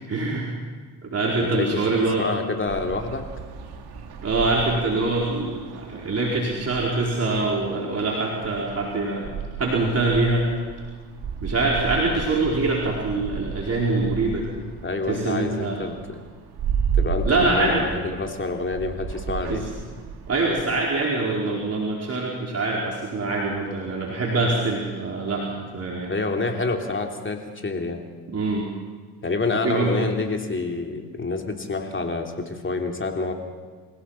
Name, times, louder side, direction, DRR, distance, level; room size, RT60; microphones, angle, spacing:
voice 1, 0.1-0.5 1.0-2.3 4.2-9.3 9.6-10.5 11.4-14.5 15.1-15.8 17.2-17.8 19.5-19.6 20.3-26.1 28.3-28.7 29.5-29.9, right 3 dB, 30° right, -4 dB, 4.7 m, -24 dB
voice 2, 1.4-1.8 2.2-3.2 14.8-16.2 16.9-19.6 26.1-28.0 29.2-33.3, left 3 dB, 25° left, 3 dB, 3.3 m, -27 dB
sound 1, 2.7-20.6, right 6 dB, 55° right, 3.1 m, -33 dB
28.0 x 16.5 x 5.9 m, 1.5 s
hypercardioid pair, 60°, 46 cm